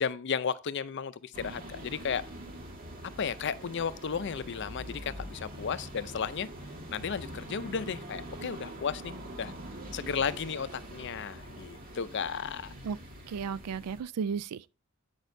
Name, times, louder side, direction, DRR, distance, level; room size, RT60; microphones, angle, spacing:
voice 1, 0.0-2.2 3.2-6.5 6.9-9.5 9.9-12.7, left 6 dB, 50° left, 0.5 m, -34 dB
sound 1, 1.3-14.0, right 1 dB, 40° right, 1.8 m, -44 dB
voice 2, 13.3-14.7, right 6 dB, 85° right, 0.3 m, -34 dB
8.7 x 6.3 x 2.6 m
head